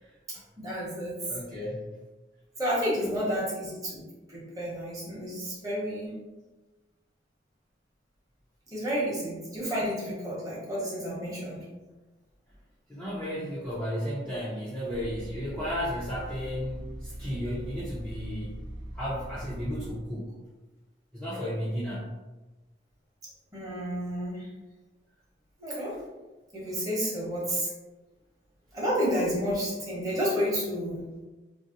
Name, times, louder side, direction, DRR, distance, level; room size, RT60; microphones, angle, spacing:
voice 1, 0.3-1.2 2.6-4.0 4.3-6.1 8.7-11.6 23.5-24.5 25.6-25.9 26.5-27.7 28.7-31.0, equal, 20° right, -7 dB, 0.9 m, -30 dB
voice 2, 1.2-1.9 3.0-3.1 12.9-18.6 18.9-20.3 21.1-22.1, equal, 5° left, -10 dB, 0.5 m, -34 dB
sound 1, 14.9-19.9, right 1 dB, 85° right, 0.7 m, -41 dB
2.6 x 2.0 x 3.7 m, 1.2 s
head